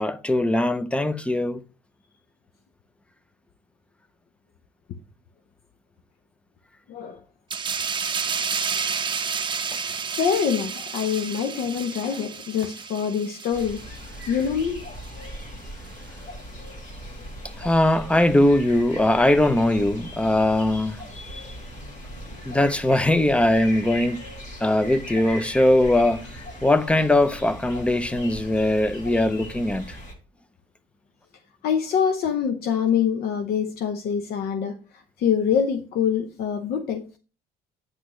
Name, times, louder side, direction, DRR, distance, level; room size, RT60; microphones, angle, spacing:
voice 1, 0.0-1.6 17.6-21.5 22.5-24.2 24.6-26.3 26.6-30.0, left 1 dB, 5° left, 0.6 m, -21 dB
voice 2, 6.9-7.2 10.2-13.9 14.3-14.8 31.6-37.2, left 7 dB, 65° left, 0.8 m, -25 dB
sound 1, 7.5-14.7 15.0-15.2, right 6 dB, 30° right, 0.7 m, -30 dB
sound 2, 13.5-30.1, equal, 45° left, 2.4 m, -39 dB
9.0 x 6.1 x 3.1 m
cardioid pair, 110°, 17 cm